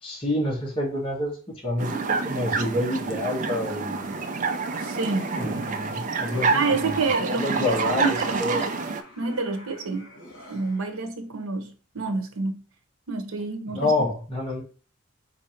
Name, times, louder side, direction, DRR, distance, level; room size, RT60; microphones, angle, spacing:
voice 1, 0.0-1.4 1.6-4.2 5.4-8.6 13.7-14.6, left 1 dB, 25° left, 1.1 m, -28 dB
sound 1, 1.8-9.0, right 4 dB, 35° right, 0.4 m, -28 dB
sound 2, 2.3-11.0, left 2 dB, 60° left, 1.6 m, -46 dB
voice 2, 4.8-5.3 6.5-8.7 9.2-10.1 10.5-12.6 13.1-13.9, right 3 dB, 85° right, 0.8 m, -28 dB
4.2 x 2.6 x 4.3 m
head